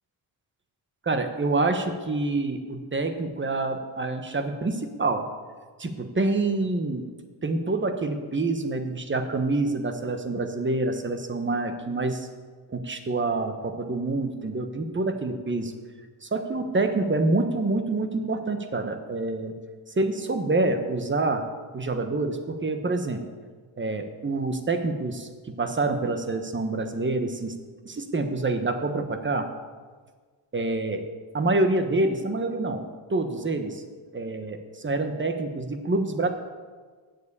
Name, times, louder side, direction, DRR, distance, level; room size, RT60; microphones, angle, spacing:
voice 1, 1.0-5.3 5.8-7.1 7.4-12.3 12.7-15.7 16.2-19.5 20.0-21.4 21.7-23.2 23.8-27.5 27.8-29.5 30.5-31.0 31.3-33.8 34.1-36.3, right 2 dB, 25° right, 7 dB, 1.2 m, -27 dB
8.0 x 7.4 x 8.2 m, 1.5 s
cardioid pair, 100°, 46 cm